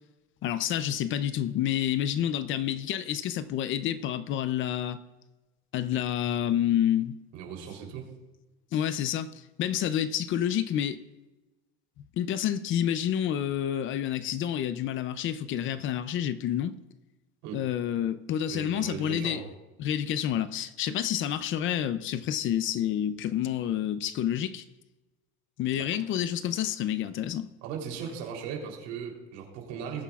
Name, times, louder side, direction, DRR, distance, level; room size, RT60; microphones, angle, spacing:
voice 1, 0.4-5.0 5.7-7.2 8.7-9.3 9.6-11.0 12.2-16.8 17.5-19.4 19.8-24.6 25.6-27.5, left 10 dB, 40° left, 0.5 m, -29 dB
voice 2, 7.3-8.1 17.4-17.6 18.5-19.5 25.8-25.9 27.6-30.0, right 7 dB, 80° right, 3.5 m, -38 dB
20.0 x 9.9 x 2.4 m
cardioid pair, 160°, 31 cm